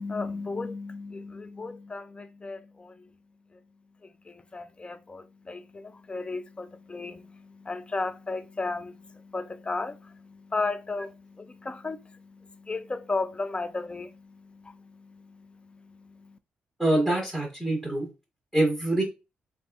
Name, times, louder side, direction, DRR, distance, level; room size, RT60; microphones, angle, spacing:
voice 1, 0.0-2.9 4.3-15.5 15.9-16.4, left 3 dB, 25° left, 0.4 m, -35 dB
voice 2, 16.8-18.1 18.5-19.0, right 1 dB, 5° left, 1.8 m, -25 dB
3.3 x 2.5 x 2.4 m
cardioid pair, 60°, 4 cm